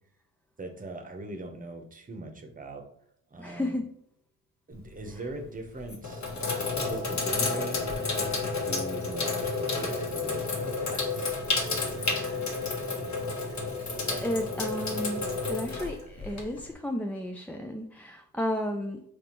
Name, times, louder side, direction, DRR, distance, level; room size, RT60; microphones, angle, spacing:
voice 1, 0.6-2.8 3.3-3.7 4.7-6.2 6.9-7.8 8.0-11.4 11.6-12.7, right 2 dB, 20° right, 4 dB, 0.9 m, -40 dB
voice 2, 3.4-3.8 12.0-12.4 14.1-19.0, equal, 5° left, 2 dB, 0.3 m, -33 dB
Sink (filling or washing), 4.7-5.1 5.8-16.7, left 3 dB, 45° left, 1.2 m, -31 dB
4.2 x 3.1 x 3.1 m, 0.69 s
supercardioid pair, 60°, 40 cm